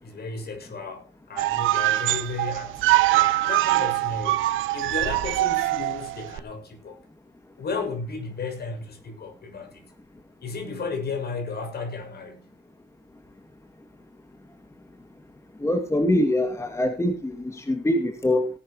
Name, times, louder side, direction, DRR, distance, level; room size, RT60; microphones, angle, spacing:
voice 1, 0.0-4.5 4.7-7.0 7.6-9.9 10.4-12.5, left 4 dB, 55° left, 6.4 m, -34 dB
sound 1, 1.4-6.4, right 17 dB, 90° right, 0.9 m, -23 dB
voice 2, 15.6-18.5, left 1 dB, 15° left, 2.1 m, -24 dB
18.0 x 11.5 x 2.9 m
cardioid pair, 90°, 20 cm